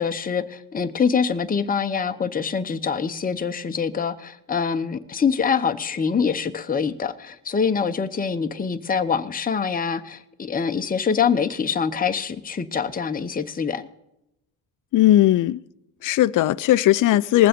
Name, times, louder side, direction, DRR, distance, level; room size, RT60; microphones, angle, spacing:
voice 1, 0.0-13.9, left 6 dB, 20° left, 0.8 m, -24 dB
voice 2, 14.9-15.6 16.0-17.5, left 14 dB, 45° left, 0.5 m, -17 dB
19.5 x 7.6 x 5.2 m
cardioid pair, 90°, 44 cm